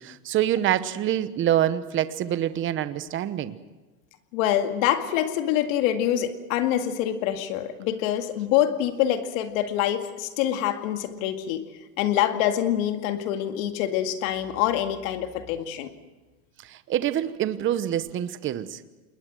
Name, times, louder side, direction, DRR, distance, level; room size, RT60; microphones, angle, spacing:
voice 1, 0.0-3.6 16.6-18.8, right 11 dB, 25° right, 13 dB, 1.0 m, -26 dB
voice 2, 4.3-11.7 12.0-15.9, left 11 dB, 60° left, 7 dB, 2.1 m, -25 dB
28.0 x 21.0 x 6.3 m, 1.2 s
supercardioid pair, 135°, 45 cm